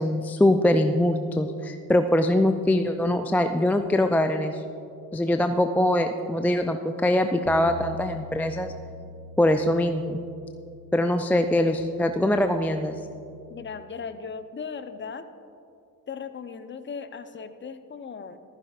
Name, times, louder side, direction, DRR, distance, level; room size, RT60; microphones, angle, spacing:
voice 1, 0.0-4.6 5.1-8.7 9.4-10.2 10.9-13.0, left 1 dB, 5° left, 7 dB, 0.3 m, -23 dB
sound 1, 7.5-13.7, left 6 dB, 80° left, 1.2 m, -44 dB
voice 2, 13.5-15.3 16.1-18.4, left 5 dB, 25° left, 10 dB, 0.8 m, -37 dB
19.0 x 14.5 x 2.5 m, 2.6 s
figure-of-eight pair, 55°, 44 cm